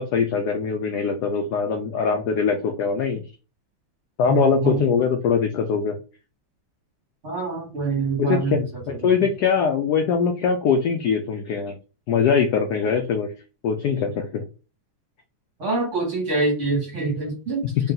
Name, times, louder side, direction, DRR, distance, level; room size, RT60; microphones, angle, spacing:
voice 1, 0.0-3.2 4.2-6.0 8.2-11.8 12.1-13.3 13.6-14.4 17.8-17.9, left 6 dB, 75° left, 5 dB, 0.9 m, -22 dB
voice 2, 4.3-4.9 7.2-9.0 15.6-17.6, right 3 dB, 40° right, -2 dB, 1.7 m, -25 dB
3.4 x 2.7 x 3.8 m, 0.33 s
omnidirectional pair, 2.3 m